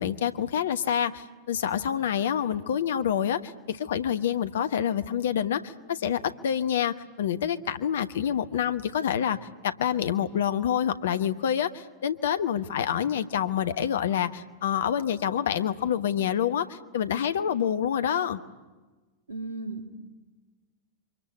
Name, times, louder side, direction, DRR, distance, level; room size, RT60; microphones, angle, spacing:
voice 1, 0.0-9.4 9.6-18.4, left 9 dB, 60° left, 12 dB, 1.1 m, -27 dB
voice 2, 19.3-20.0, right 3 dB, 70° right, 5 dB, 2.6 m, -35 dB
27.5 x 24.5 x 8.3 m, 1.3 s
figure-of-eight pair, 90°, 0 cm